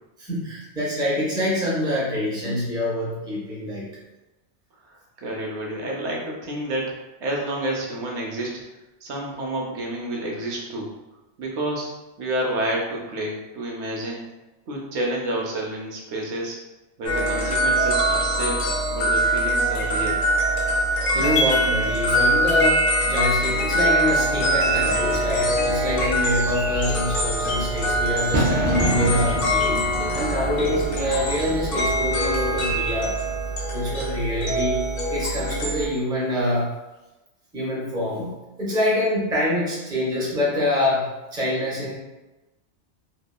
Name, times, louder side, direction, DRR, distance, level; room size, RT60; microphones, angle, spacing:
voice 1, 0.2-3.9 21.1-29.8 30.1-33.2 33.7-36.7 37.5-42.0, left 1 dB, 5° right, -7 dB, 0.6 m, -25 dB
voice 2, 4.9-8.5 9.0-10.9 11.4-11.9 12.2-14.3 14.7-16.6 17.0-20.2, right 1 dB, 80° right, -1 dB, 0.9 m, -29 dB
sound 1, 17.0-35.9, right 1 dB, 55° left, 0.7 m, -23 dB
Bird / Fireworks, 24.4-33.5, equal, 50° right, 0.6 m, -30 dB
2.9 x 2.1 x 2.2 m, 1.0 s
omnidirectional pair, 1.2 m